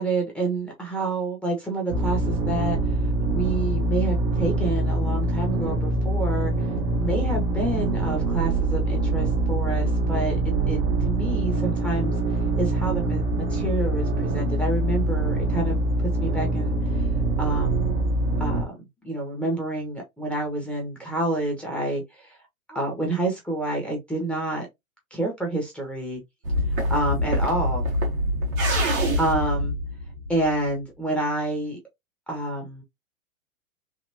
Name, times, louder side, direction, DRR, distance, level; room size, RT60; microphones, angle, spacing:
voice 1, 0.0-2.8 3.3-6.7 7.0-15.8 16.2-17.1 17.4-17.9 18.4-18.6 19.0-22.4 22.7-24.7 25.1-26.2 26.9-27.8 28.9-29.7 30.3-31.8 32.3-32.8, right 2 dB, 5° left, 1.0 m, -28 dB
sound 1, 1.9-18.6, right 2 dB, 50° right, 1.1 m, -24 dB
sound 2, 26.4-30.7, equal, 75° right, 1.6 m, -25 dB
3.5 x 2.2 x 2.7 m
hypercardioid pair, 115°, 42 cm